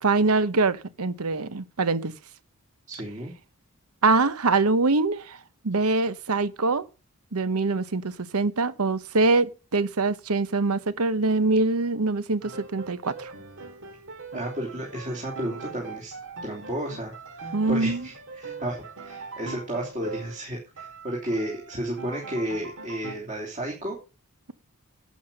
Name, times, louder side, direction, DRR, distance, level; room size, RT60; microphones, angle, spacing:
voice 1, 0.0-2.1 4.0-5.4 5.6-6.8 7.3-13.3 17.5-18.1, right 3 dB, 80° right, 1.0 m, -24 dB
voice 2, 2.9-3.3 14.3-16.1 16.4-24.0, right 1 dB, 35° right, 3.2 m, -33 dB
Piano, 12.4-20.5 20.8-23.1, right 3 dB, 60° right, 2.1 m, -41 dB
11.5 x 8.5 x 5.2 m
head